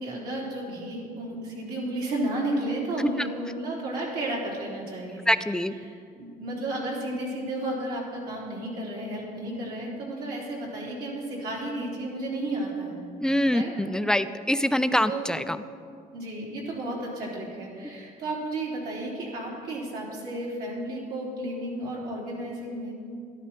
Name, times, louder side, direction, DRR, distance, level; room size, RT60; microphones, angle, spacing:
voice 1, 0.0-5.3 5.5-13.0 13.5-13.7 15.1-15.3 16.1-22.9, right 1 dB, 65° right, -4 dB, 3.8 m, -33 dB
voice 2, 5.3-5.7 13.2-15.4, left 1 dB, 5° left, 11 dB, 0.4 m, -24 dB
13.0 x 11.5 x 4.5 m, 2.3 s
cardioid pair, 110°, 17 cm